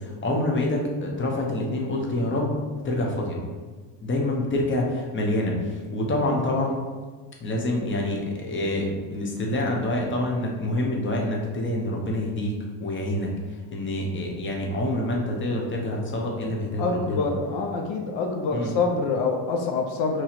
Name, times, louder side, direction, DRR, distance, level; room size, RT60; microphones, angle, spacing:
voice 1, 0.0-2.6 2.8-3.4 4.0-6.8 7.4-13.3 13.7-17.3 18.5-18.7, left 1 dB, 25° left, -1 dB, 0.8 m, -27 dB
voice 2, 16.8-20.2, left 4 dB, 70° left, 2 dB, 0.7 m, -26 dB
3.0 x 2.7 x 4.1 m, 1.4 s
supercardioid pair, 90°, 47 cm